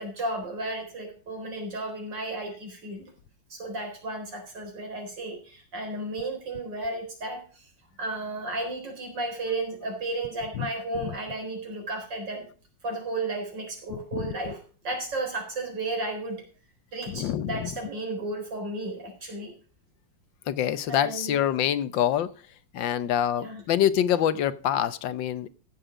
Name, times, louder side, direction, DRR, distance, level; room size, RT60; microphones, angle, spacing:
voice 1, 0.0-3.1 3.5-7.4 8.0-12.5 12.8-16.4 16.9-19.5 20.9-21.4 23.3-23.6, right 2 dB, 75° right, 2 dB, 4.8 m, -33 dB
voice 2, 13.9-14.3 17.1-17.7 20.5-22.3 22.7-25.5, left 10 dB, 90° left, 15 dB, 1.6 m, -26 dB
15.0 x 7.5 x 5.0 m, 0.38 s
omnidirectional pair, 2.0 m